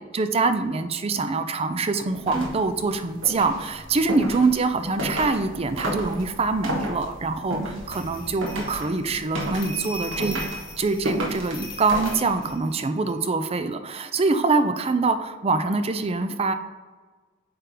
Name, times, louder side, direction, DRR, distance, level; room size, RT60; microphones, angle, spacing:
voice 1, 0.0-10.4 10.8-16.5, right 3 dB, 30° right, 9 dB, 0.5 m, -24 dB
sound 1, 2.1-12.6, right 1 dB, 70° right, 1.5 m, -33 dB
sound 2, 7.9-13.1, equal, 25° left, 1.2 m, -40 dB
8.8 x 3.4 x 3.8 m, 1.4 s
head